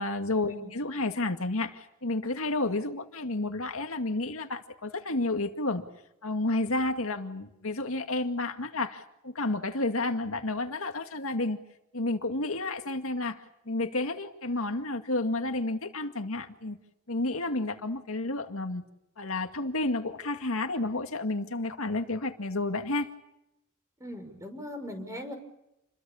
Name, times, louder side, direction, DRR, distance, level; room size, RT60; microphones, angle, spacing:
voice 1, 0.0-5.8 6.2-11.6 11.9-16.8 17.1-18.8 19.2-23.1, left 2 dB, 70° left, 6 dB, 2.1 m, -31 dB
voice 2, 24.0-25.4, left 1 dB, 15° right, 6 dB, 5.8 m, -39 dB
30.0 x 23.0 x 7.2 m, 0.86 s
head